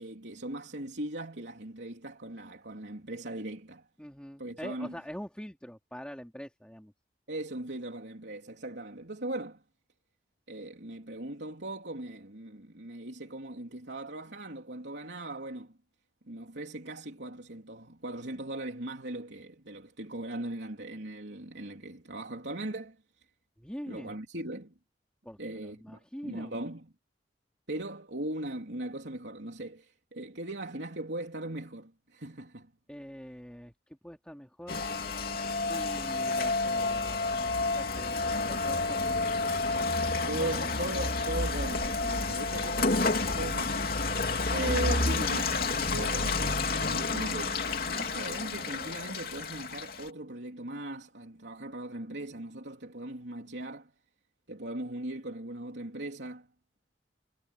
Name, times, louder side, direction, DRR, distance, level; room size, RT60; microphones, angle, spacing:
voice 1, 0.0-3.9 4.4-4.9 7.3-9.6 10.5-15.7 16.3-23.0 23.9-24.7 25.4-26.9 27.7-32.7 40.3-43.9 44.5-53.9 54.5-56.5, right 1 dB, 80° right, 3.4 m, -39 dB
voice 2, 4.0-6.9 23.6-24.2 25.2-26.6 32.9-34.8 35.7-39.4 40.4-40.7, equal, 5° left, 2.7 m, -44 dB
Rain, 34.7-50.1, left 3 dB, 55° left, 3.2 m, -30 dB
head